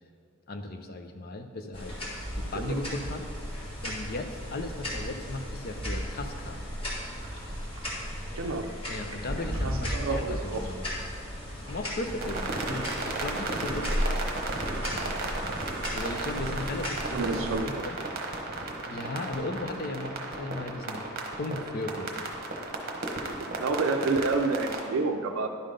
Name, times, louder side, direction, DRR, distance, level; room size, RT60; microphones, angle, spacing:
voice 1, 0.5-1.9 2.3-3.3 3.8-6.6 8.9-10.8 11.7-14.2 14.9-15.6 15.9-18.0 18.9-21.1 21.3-22.3, left 2 dB, 45° left, 6 dB, 0.6 m, -36 dB
sound 1, 1.7-17.6, equal, 25° left, 1.7 m, -35 dB
sound 2, 7.1-15.4, right 1 dB, 20° right, 1.2 m, -47 dB
voice 2, 8.4-8.7 9.6-10.6 17.1-18.1 23.6-25.5, right 3 dB, 75° right, 4 dB, 0.4 m, -29 dB
sound 3, 12.2-24.8, right 2 dB, 50° right, 1.0 m, -35 dB
11.0 x 3.8 x 5.0 m, 2.2 s
head